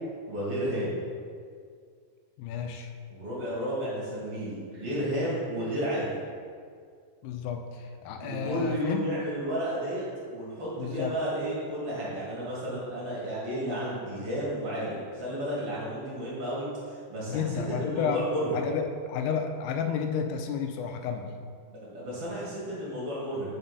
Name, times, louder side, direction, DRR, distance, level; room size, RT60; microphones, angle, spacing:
voice 1, 0.3-1.0 3.1-6.2 8.2-10.0 10.3-18.5 21.7-23.6, equal, 45° right, -8 dB, 2.1 m, -32 dB
voice 2, 2.4-2.9 7.2-9.0 10.8-11.2 17.3-18.2 18.5-21.3, left 7 dB, 85° left, 5 dB, 2.9 m, -31 dB
5.8 x 5.5 x 5.4 m, 2.1 s
omnidirectional pair, 5.1 m